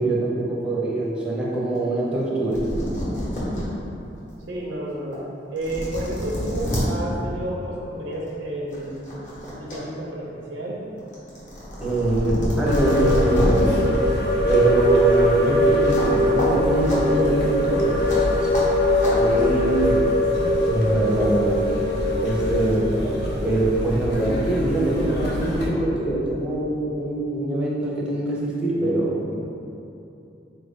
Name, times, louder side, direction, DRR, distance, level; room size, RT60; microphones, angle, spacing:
voice 1, 0.0-2.7 11.8-13.7 14.5-18.5 19.1-20.1 20.7-21.6 22.2-23.0 23.4-29.3, right 2 dB, 5° right, -6 dB, 0.6 m, -23 dB
sound 1, 2.3-2.4 2.5-3.6 4.2-4.3 5.1-5.2 5.6-6.8 8.1-8.3 8.7-9.8 10.1-13.6 15.9-16.1 16.4-16.5 16.8-17.0 18.1-18.2 18.5-18.6 19.0-19.1, equal, 45° left, 1.0 m, -28 dB
voice 2, 4.5-5.2 5.5-9.2 9.5-10.8, right 1 dB, 85° right, -3 dB, 0.6 m, -31 dB
sound 2, 12.7-25.7, left 1 dB, 60° left, 0.6 m, -22 dB
4.0 x 2.5 x 3.5 m, 2.8 s
head